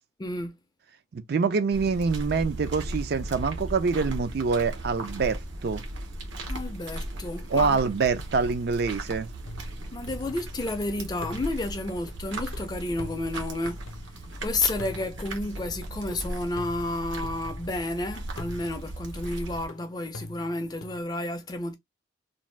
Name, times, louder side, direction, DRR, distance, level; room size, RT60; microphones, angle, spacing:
voice 1, 0.2-0.5 6.5-7.8 9.9-13.8 14.4-21.7, left 2 dB, 20° left, 0.4 m, -31 dB
voice 2, 1.1-5.8 7.5-9.3, right 5 dB, 50° right, 0.4 m, -25 dB
sound 1, 1.7-19.7, right 1 dB, 65° right, 0.8 m, -37 dB
sound 2, 9.4-10.8 11.2-14.4 14.8-17.9 18.4-21.0, left 2 dB, 75° left, 0.6 m, -45 dB
2.6 x 2.2 x 3.2 m
head